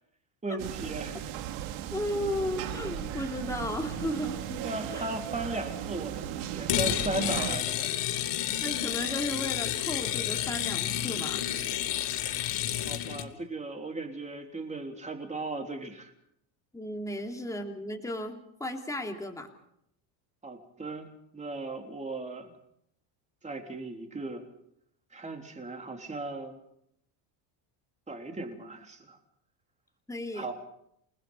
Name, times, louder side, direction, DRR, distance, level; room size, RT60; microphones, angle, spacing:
voice 1, 0.4-1.2 4.6-7.9 12.2-16.1 20.4-21.1 21.3-22.5 23.4-24.5 25.1-26.6 28.1-29.2 30.3-30.5, right 2 dB, 15° right, 4 dB, 3.6 m, -37 dB
sound 1, 0.6-7.6, right 11 dB, 75° right, 2.4 m, -36 dB
voice 2, 1.9-4.6 4.9-5.1 8.6-11.4 16.7-19.5 30.1-30.5, left 1 dB, 5° left, 2 dB, 3.2 m, -35 dB
sound 2, 6.7-13.3, left 12 dB, 60° left, 2.3 m, -30 dB
29.0 x 20.0 x 5.7 m, 0.75 s
cardioid pair, 130°, 49 cm